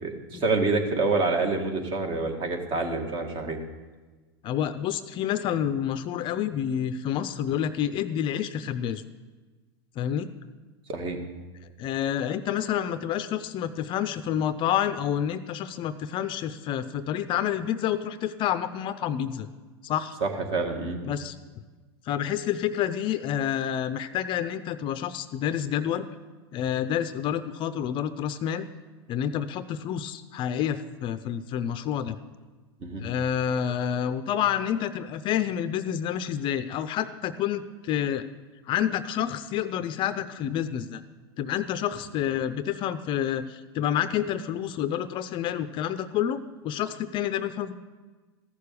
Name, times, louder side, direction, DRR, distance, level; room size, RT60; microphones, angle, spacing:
voice 1, 0.0-3.6 10.9-11.2 20.2-21.0 32.8-33.0, right 3 dB, 40° right, 4 dB, 1.9 m, -27 dB
voice 2, 4.4-9.0 10.0-10.3 11.8-19.5 19.8-20.2 21.1-21.4 22.1-26.1 26.5-28.7 29.1-32.2 33.0-38.3 38.7-41.0 41.4-46.4 46.6-47.7, left 10 dB, 40° left, 12 dB, 0.5 m, -28 dB
14.5 x 6.7 x 6.9 m, 1.3 s
hypercardioid pair, 120°, 14 cm